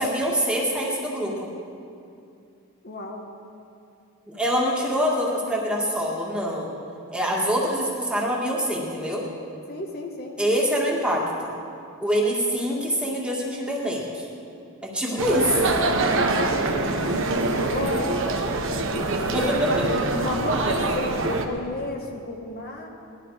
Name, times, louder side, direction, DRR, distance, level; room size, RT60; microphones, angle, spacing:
voice 1, 0.0-1.5 4.3-6.7 7.1-9.2 10.4-11.5 12.0-14.3 14.8-15.7 16.1-16.2 19.3-20.0 20.6-20.8, equal, 5° right, -4 dB, 2.1 m, -25 dB
voice 2, 2.8-3.3 9.7-10.4 15.6-19.7 20.1-22.9, left 1 dB, 50° left, 1 dB, 1.3 m, -33 dB
sound 1, 15.2-21.5, right 2 dB, 65° right, 1.1 m, -25 dB
18.5 x 12.0 x 5.0 m, 2.5 s
head